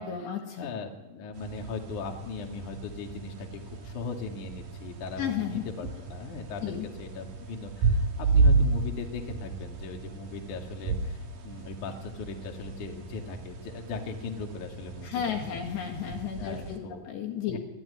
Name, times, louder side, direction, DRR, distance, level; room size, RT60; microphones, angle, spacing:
voice 1, 0.0-0.7 5.2-5.6 6.6-6.9 15.0-17.6, left 8 dB, 60° left, 2 dB, 3.7 m, -33 dB
voice 2, 0.6-15.6 16.4-17.2 17.5-17.6, left 4 dB, 45° left, 2 dB, 3.1 m, -39 dB
sound 1, 1.3-16.8, right 3 dB, 50° right, 4.1 m, -32 dB
25.0 x 15.5 x 9.9 m, 1.0 s
omnidirectional pair, 5.9 m